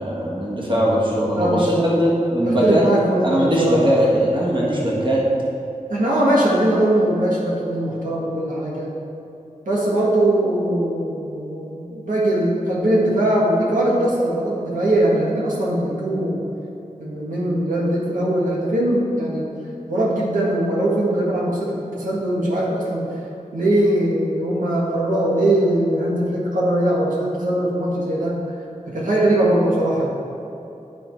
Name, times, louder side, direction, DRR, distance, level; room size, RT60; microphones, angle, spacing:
voice 1, 0.0-2.8 3.2-5.2, equal, 35° right, -5 dB, 1.6 m, -20 dB
voice 2, 1.3-1.7 2.4-4.0 5.9-8.9 9.6-16.4 17.0-19.5 19.9-23.1 23.5-28.4 28.9-30.1, right 1 dB, 75° right, -5 dB, 1.6 m, -21 dB
11.5 x 3.9 x 4.6 m, 2.9 s
wide cardioid pair, 70°, 14 cm